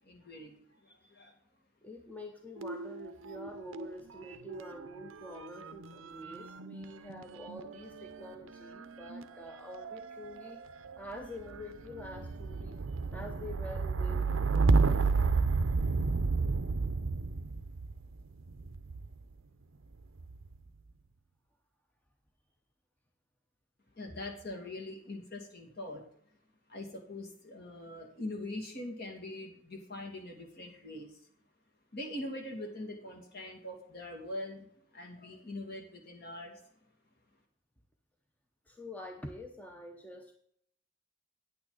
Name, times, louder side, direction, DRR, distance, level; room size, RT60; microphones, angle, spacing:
voice 1, 0.0-0.5 1.1-1.3 24.0-26.0 26.7-31.1 31.9-34.7 34.9-36.6, left 1 dB, 50° left, 2 dB, 2.3 m, -42 dB
voice 2, 1.8-10.6 11.0-12.8 13.1-15.2 38.7-40.3, left 1 dB, 10° left, 3 dB, 0.8 m, -46 dB
sound 1, 2.6-19.2 20.0-20.6, right 4 dB, 75° right, 0.6 m, -32 dB
9.5 x 8.8 x 3.9 m, 0.66 s
head